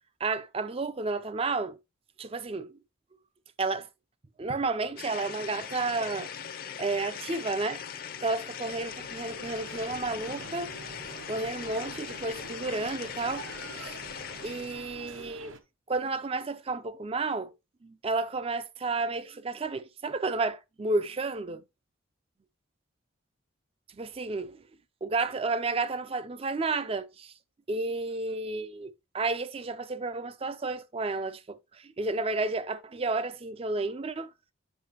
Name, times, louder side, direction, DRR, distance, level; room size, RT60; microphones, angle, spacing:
voice 1, 0.2-1.8 2.2-2.7 3.6-3.9 4.4-6.3 6.8-7.8 8.2-10.7 11.3-13.5 13.8-14.0 14.4-15.5 15.9-17.5 17.8-21.6 24.0-24.6 25.0-27.3 27.7-34.3, right 3 dB, 25° right, 0.4 m, -31 dB
sound 1, 5.0-14.9, left 7 dB, 45° left, 0.5 m, -40 dB
sound 2, 7.4-15.6, right 3 dB, 70° right, 0.8 m, -47 dB
7.4 x 5.8 x 2.9 m
head